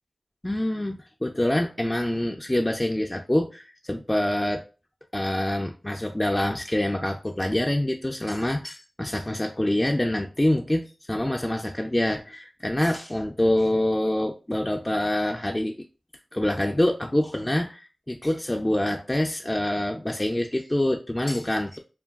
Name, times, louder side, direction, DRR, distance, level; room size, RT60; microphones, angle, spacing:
voice 1, 0.4-4.7 5.1-15.9 16.3-21.8, left 1 dB, 20° left, 0.3 m, -26 dB
2.2 x 2.2 x 3.4 m
wide cardioid pair, 65°, 0 cm